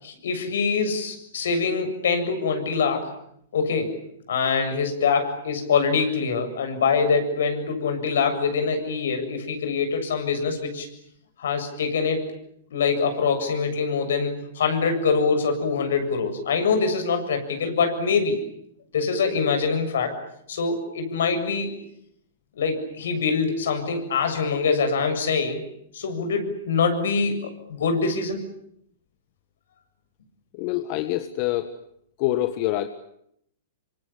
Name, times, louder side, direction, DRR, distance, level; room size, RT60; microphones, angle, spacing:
voice 1, 0.0-3.1 3.5-3.9 4.3-10.9 11.4-12.3 12.7-18.4 18.9-20.2 20.5-21.7 22.6-25.6 25.9-27.4 27.7-28.4, left 5 dB, 75° left, 7 dB, 7.3 m, -24 dB
voice 2, 30.5-31.7 32.2-32.9, left 15 dB, 45° left, 10 dB, 1.7 m, -25 dB
26.0 x 25.5 x 8.7 m, 0.72 s
hypercardioid pair, 125°, 0 cm